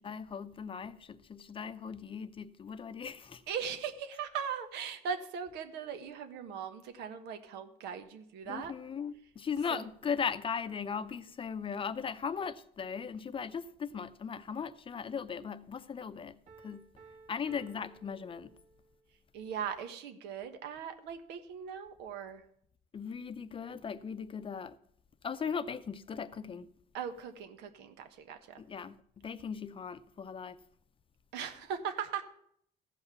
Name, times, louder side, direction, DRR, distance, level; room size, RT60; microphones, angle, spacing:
voice 1, 0.0-3.4 8.5-16.9 17.3-18.6 22.9-24.8 25.2-26.7 28.6-30.6, left 6 dB, 30° left, 0.6 m, -38 dB
voice 2, 3.5-8.7 9.7-9.8 19.3-22.4 26.9-28.6 31.3-32.2, right 7 dB, 90° right, 1.4 m, -39 dB
Piano, 16.5-19.0, right 4 dB, 45° right, 1.8 m, -57 dB
15.0 x 5.7 x 6.8 m
cardioid pair, 110°, 17 cm